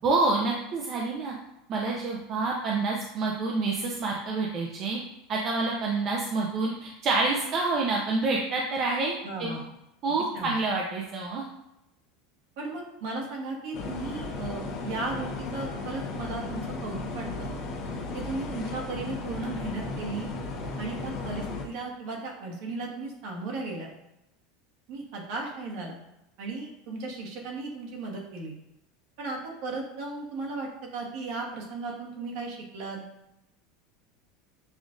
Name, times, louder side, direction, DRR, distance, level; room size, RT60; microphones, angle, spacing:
voice 1, 0.0-1.3 1.7-5.0 5.3-9.1 9.4-9.6 10.0-11.4, right 3 dB, 35° right, -1 dB, 0.5 m, -27 dB
voice 2, 9.2-9.6 10.3-10.5 12.6-17.5 18.1-20.3 20.8-23.9 24.9-26.0 26.4-28.6 29.2-33.0, right 3 dB, 60° right, 0 dB, 1.1 m, -36 dB
sound 1, 13.7-21.6, left 3 dB, 50° left, 0.9 m, -35 dB
7.0 x 2.4 x 2.5 m, 0.87 s
supercardioid pair, 160°, 0 cm